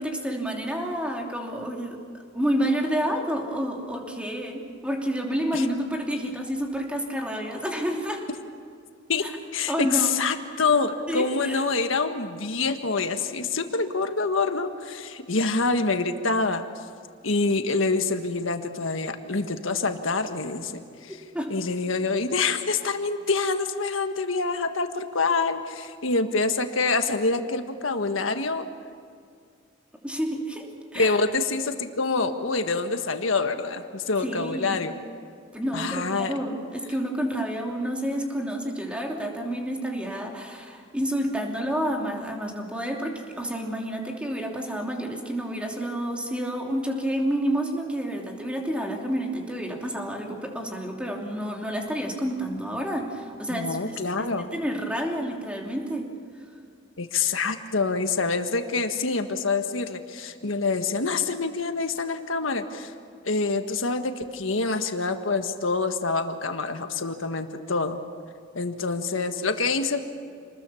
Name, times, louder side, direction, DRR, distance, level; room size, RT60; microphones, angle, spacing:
voice 1, 0.0-2.0 2.3-8.2 9.2-9.3 9.7-10.2 11.1-11.6 21.3-21.5 30.0-31.2 34.2-34.9 35.5-53.8 54.2-56.1, equal, 5° right, 0 dB, 3.0 m, -29 dB
voice 2, 9.5-16.7 17.2-21.2 21.5-28.7 30.9-35.0 35.7-36.3 53.5-54.5 57.0-62.9 63.2-68.0 68.5-70.0, left 4 dB, 90° left, 7 dB, 1.6 m, -26 dB
27.5 x 20.5 x 7.1 m, 2.3 s
head